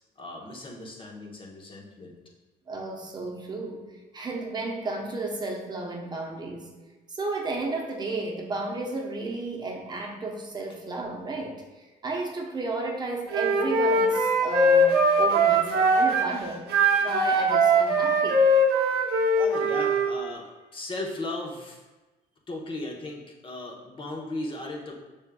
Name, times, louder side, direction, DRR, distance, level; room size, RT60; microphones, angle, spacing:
voice 1, 0.2-2.1 19.4-21.8 22.5-24.9, left 2 dB, 30° left, -1 dB, 0.9 m, -36 dB
voice 2, 2.7-6.7 7.1-16.7 17.0-18.4, right 2 dB, 25° right, 0 dB, 0.9 m, -33 dB
Wind instrument woodwind instrument, 13.3-16.3 16.7-20.1, right 1 dB, 70° right, 0.8 m, -21 dB
6.3 x 3.5 x 2.2 m, 1.2 s
cardioid pair, 110°, 17 cm